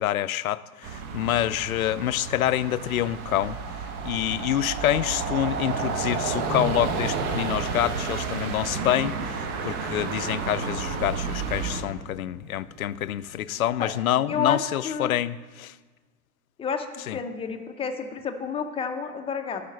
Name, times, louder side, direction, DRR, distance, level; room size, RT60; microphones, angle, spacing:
voice 1, 0.0-3.6 4.0-15.7 17.1-17.2, left 12 dB, 70° left, 0.5 m, -27 dB
sound 1, 0.8-11.8, right 5 dB, 35° right, 1.2 m, -31 dB
sound 2, 6.5-13.9, right 2 dB, 70° right, 1.9 m, -44 dB
voice 2, 14.3-14.6 14.8-15.2 16.6-19.6, left 6 dB, 15° left, 0.7 m, -30 dB
12.0 x 5.0 x 6.8 m
figure-of-eight pair, 100°, 44 cm